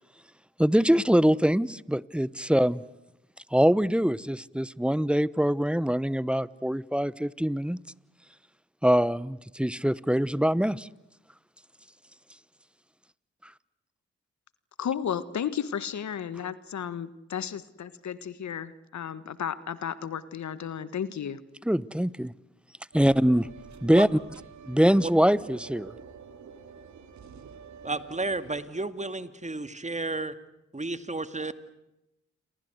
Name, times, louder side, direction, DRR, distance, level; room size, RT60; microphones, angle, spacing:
voice 1, 0.6-2.8 3.5-7.8 8.8-10.9 21.6-22.3 22.9-23.5 23.8-24.1 24.7-25.9, equal, 5° right, 1.0 m, -23 dB
voice 2, 14.8-21.4, left 8 dB, 65° left, 1.5 m, -33 dB
sound 1, 22.9-28.7, right 6 dB, 70° right, 3.0 m, -47 dB
voice 3, 27.8-30.3 30.7-31.6, right 2 dB, 25° right, 2.2 m, -32 dB
29.5 x 23.0 x 8.0 m
supercardioid pair, 45°, 30 cm